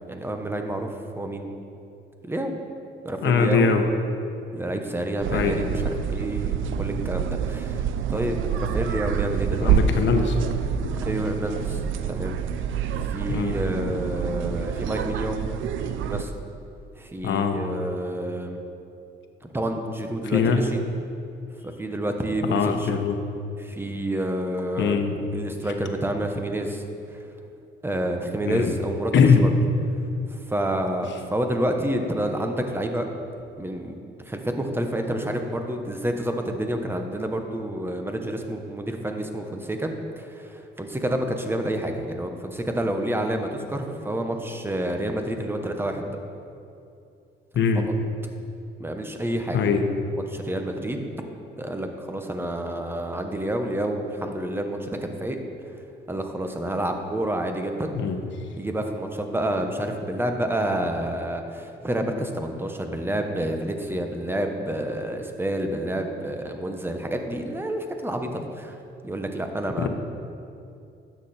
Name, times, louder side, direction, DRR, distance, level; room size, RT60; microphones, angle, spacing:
voice 1, 0.1-1.5 2.2-2.5 3.0-3.7 4.5-9.9 11.0-11.8 12.1-12.4 13.0-15.4 16.1-16.3 17.0-18.6 19.4-20.8 21.8-22.9 23.6-25.0 25.3-26.8 27.1-27.2 27.8-29.3 30.3-33.1 33.6-33.9 34.3-39.9 40.2-46.1 48.8-49.7 50.3-51.1 51.6-55.4 56.1-58.0 58.6-68.8 69.0-69.9, right 1 dB, 10° right, 4 dB, 1.2 m, -29 dB
voice 2, 3.2-3.8 5.3-5.6 9.6-10.4 10.8-10.9 13.3-13.5 17.2-17.6 20.3-20.6 22.5-23.2 24.8-25.1 28.5-28.7 29.1-29.5 47.5-47.9 49.5-49.8 58.0-58.2 69.8-69.9, left 5 dB, 70° left, 6 dB, 1.1 m, -21 dB
sound 1, 5.2-16.2, right 7 dB, 80° right, 0.6 m, -27 dB
12.0 x 8.4 x 4.4 m, 2.6 s
cardioid pair, 90°, 20 cm